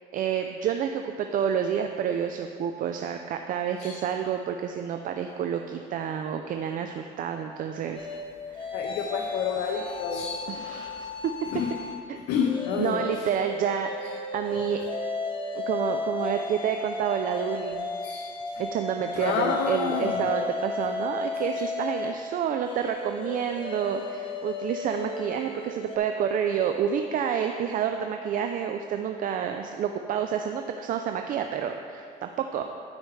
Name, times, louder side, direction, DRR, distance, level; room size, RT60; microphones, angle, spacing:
voice 1, 0.1-8.1 8.5-8.8 10.5-11.3 12.1-12.2 12.8-14.8 15.5-17.9 18.6-32.6, right 8 dB, 55° right, 5 dB, 0.4 m, -29 dB
sound 1, 8.0-12.0 12.4-26.0, left 3 dB, 30° left, 0.9 m, -34 dB
voice 2, 8.7-10.9 11.5-11.7 12.3-13.0 18.0-18.3 19.1-20.5, left 6 dB, 80° left, 2 dB, 0.6 m, -29 dB
13.5 x 4.8 x 3.2 m, 2.4 s
cardioid pair, 110°, 17 cm